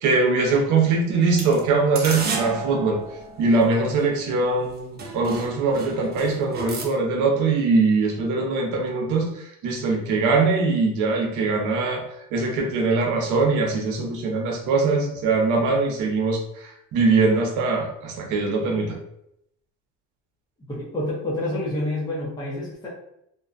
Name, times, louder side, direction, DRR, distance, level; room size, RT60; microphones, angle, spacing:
voice 1, 0.0-3.0 3.4-12.0 12.3-19.0, right 3 dB, 70° right, 2 dB, 0.8 m, -22 dB
sound 1, 1.3-4.0 4.6-4.7 5.0-6.9, right 3 dB, 30° right, 0.5 m, -33 dB
voice 2, 20.7-22.9, left 1 dB, 15° left, -5 dB, 0.6 m, -28 dB
2.5 x 2.2 x 2.4 m, 0.78 s
cardioid pair, 125°, 31 cm